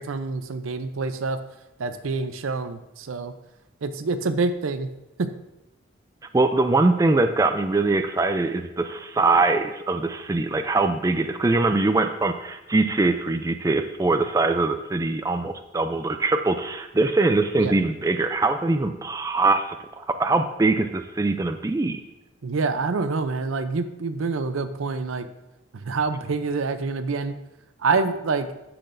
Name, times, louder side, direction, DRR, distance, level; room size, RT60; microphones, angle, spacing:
voice 1, 0.0-1.4 1.8-3.3 3.8-4.9 5.2-5.3 17.6-17.7 22.4-25.3 25.7-27.3 27.8-28.5, right 4 dB, 85° right, 10 dB, 0.6 m, -26 dB
voice 2, 6.3-22.0, right 3 dB, 15° right, 7 dB, 0.3 m, -22 dB
13.5 x 5.9 x 2.6 m, 0.97 s
head